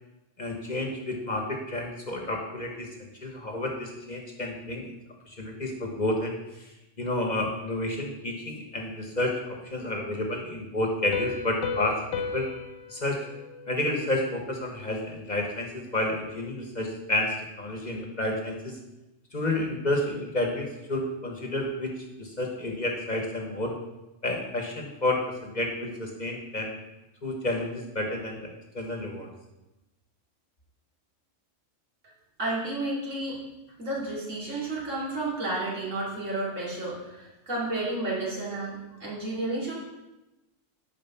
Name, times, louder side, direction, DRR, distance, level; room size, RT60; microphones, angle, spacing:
voice 1, 0.4-4.9 5.3-12.0 12.3-12.5 12.9-13.2 13.7-18.8 19.3-23.8 24.2-26.7 27.2-29.3, left 1 dB, 35° left, 2 dB, 1.1 m, -30 dB
Piano, 11.1-14.5, left 5 dB, 80° left, 1.0 m, -35 dB
voice 2, 32.4-33.4 33.8-39.7, right 2 dB, 75° right, -5 dB, 3.0 m, -31 dB
9.1 x 5.0 x 5.6 m, 0.99 s
omnidirectional pair, 1.3 m